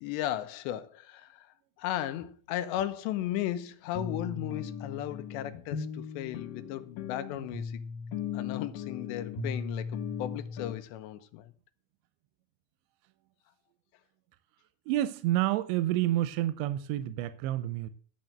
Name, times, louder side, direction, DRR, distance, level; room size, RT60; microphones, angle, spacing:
voice 1, 0.0-7.8 8.3-11.5, left 12 dB, 90° left, 3.1 m, -36 dB
sound 1, 2.2-2.3 2.8-2.9 3.3-3.4 3.9-10.7, left 6 dB, 65° left, 2.2 m, -38 dB
voice 2, 14.9-17.9, right 14 dB, 90° right, 2.9 m, -29 dB
11.5 x 7.5 x 6.5 m
omnidirectional pair, 4.9 m